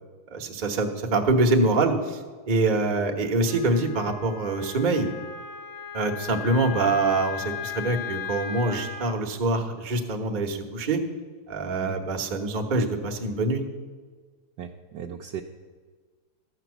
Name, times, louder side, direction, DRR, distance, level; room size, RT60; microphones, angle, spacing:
voice 1, 0.3-2.2 2.5-5.1 5.9-11.0 11.5-13.6, right 2 dB, 30° right, 2 dB, 0.9 m, -25 dB
Wind instrument woodwind instrument, 3.5-9.2, left 7 dB, 65° left, 0.7 m, -37 dB
voice 2, 14.6-15.4, right 9 dB, 70° right, 3 dB, 1.1 m, -37 dB
13.5 x 5.9 x 8.1 m, 1.5 s
omnidirectional pair, 2.3 m